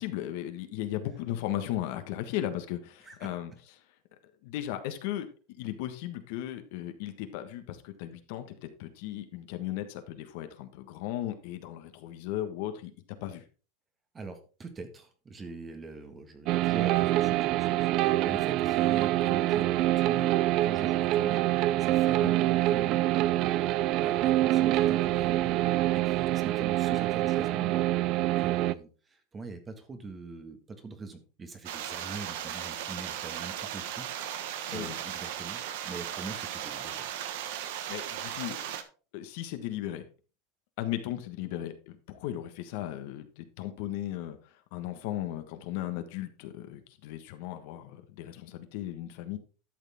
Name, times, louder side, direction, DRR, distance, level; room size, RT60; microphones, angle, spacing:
voice 1, 0.0-3.5 4.4-5.3 5.6-12.9 13.2-13.4 22.2-22.3 34.7-35.0 37.9-38.7 39.1-40.1 40.8-44.4 44.7-49.4, left 13 dB, 65° left, 8 dB, 1.3 m, -36 dB
voice 2, 14.1-20.3 20.6-23.5 23.8-34.1 34.7-37.1, right 3 dB, 20° right, 8 dB, 1.5 m, -43 dB
ethereal guitar playing, 16.5-28.7, right 15 dB, 45° right, 0.4 m, -25 dB
sound 1, 31.7-38.8, right 10 dB, 70° right, 1.2 m, -37 dB
12.0 x 6.6 x 3.5 m, 0.36 s
supercardioid pair, 145°, 0 cm